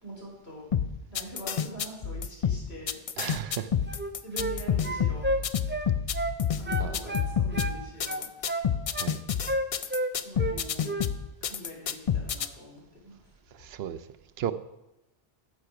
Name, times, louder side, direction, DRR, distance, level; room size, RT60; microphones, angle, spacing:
voice 1, 0.0-0.7 1.1-3.0 4.2-5.3 6.6-8.3 10.2-11.0 11.4-13.3, equal, 85° left, -3 dB, 3.8 m, -43 dB
sound 1, 0.7-12.5, left 8 dB, 50° left, 0.4 m, -29 dB
voice 2, 3.2-3.7 6.8-7.0 8.9-9.2 13.5-14.1 14.4-14.5, right 10 dB, 75° right, 13 dB, 0.8 m, -34 dB
sound 2, 3.9-4.6 4.8-6.4 6.7-7.8 8.1-9.1 9.5-10.6 10.8-11.1, right 1 dB, 15° right, 0.4 m, -31 dB
9.7 x 7.4 x 5.9 m, 0.93 s
omnidirectional pair, 1.1 m